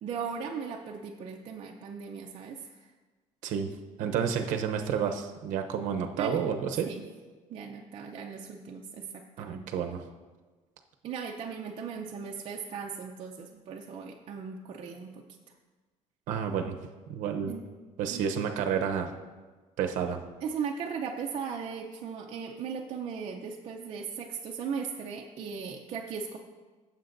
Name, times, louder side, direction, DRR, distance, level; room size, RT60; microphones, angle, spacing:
voice 1, 0.0-2.8 6.2-6.4 6.9-7.0 7.5-9.1 9.4-9.7 11.0-15.2 17.5-17.7 18.1-18.3 20.4-26.4, right 6 dB, 45° right, 0 dB, 0.6 m, -37 dB
voice 2, 4.0-6.9 9.4-10.0 16.3-16.8 17.1-17.5 18.0-19.1 19.8-20.2, right 7 dB, 80° right, 5 dB, 0.8 m, -30 dB
15.5 x 7.3 x 2.6 m, 1.3 s
cardioid pair, 160°, 13 cm